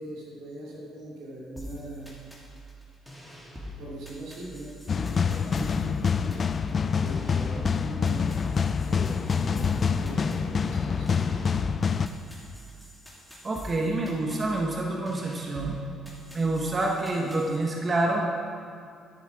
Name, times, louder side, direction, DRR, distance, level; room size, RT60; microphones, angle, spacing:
voice 1, 0.0-2.1 3.8-6.5 7.0-8.3 8.9-11.7, right 1 dB, 80° right, -5 dB, 2.8 m, -41 dB
sound 1, 1.6-17.6, equal, ahead, 2.3 m, -44 dB
sound 2, 4.9-12.1, left 6 dB, 40° left, 0.4 m, -26 dB
voice 2, 13.4-15.8 16.3-18.3, right 2 dB, 30° right, -1 dB, 1.0 m, -27 dB
11.0 x 7.0 x 4.8 m, 2.3 s
cardioid pair, 90°, 0 cm